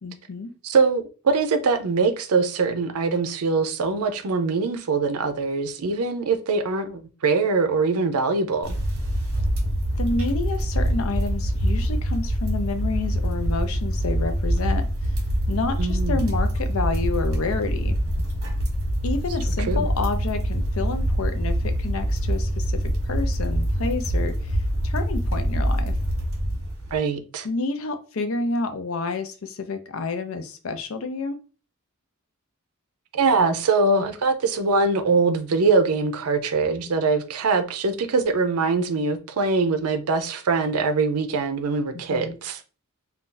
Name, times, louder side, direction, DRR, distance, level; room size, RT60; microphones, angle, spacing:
voice 1, 0.0-0.5 10.0-15.1 15.5-18.0 19.0-25.9 27.4-31.4 41.9-42.4, left 3 dB, 65° left, 0.5 m, -29 dB
voice 2, 0.6-8.8 15.8-16.3 19.7-19.9 26.9-27.5 33.1-42.6, right 4 dB, 85° right, 0.5 m, -23 dB
sound 1, 8.6-27.0, equal, 65° right, 1.1 m, -25 dB
2.5 x 2.3 x 3.8 m
head